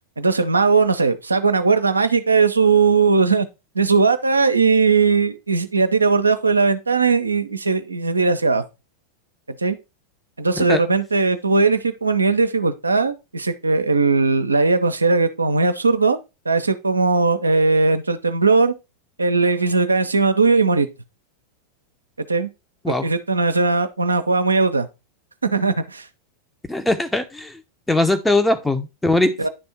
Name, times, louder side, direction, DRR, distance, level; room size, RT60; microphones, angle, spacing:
voice 1, 0.2-3.5 3.7-8.6 9.5-9.8 10.4-16.2 16.5-18.7 19.2-20.9 22.2-22.5 22.9-24.9 25.5-26.1 29.4-29.5, right 4 dB, 80° right, 0.6 m, -18 dB
voice 2, 26.7-27.6 27.9-29.4, left 2 dB, 5° left, 0.8 m, -20 dB
10.0 x 3.5 x 4.2 m
figure-of-eight pair, 90°, 0 cm